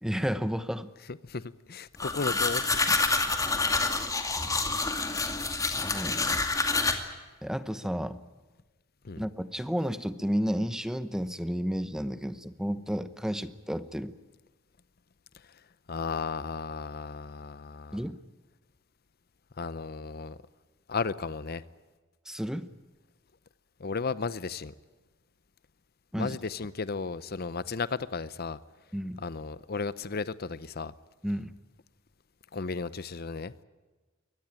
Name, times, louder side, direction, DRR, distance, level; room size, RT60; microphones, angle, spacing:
voice 1, 0.0-0.9 2.9-3.0 5.8-6.4 7.4-8.2 9.2-14.1 17.9-18.2 22.3-22.7 26.1-26.4 28.9-29.2 31.2-31.5, equal, 5° right, 13 dB, 0.9 m, -32 dB
voice 2, 1.2-2.8 9.0-9.2 15.9-18.0 19.6-20.4 20.9-21.6 23.8-24.7 26.2-28.6 29.2-30.9 32.5-33.5, left 4 dB, 50° left, 16 dB, 0.7 m, -34 dB
sound 1, 2.0-6.9, left 3 dB, 15° left, 2.3 m, -27 dB
23.0 x 19.0 x 8.9 m, 1.3 s
head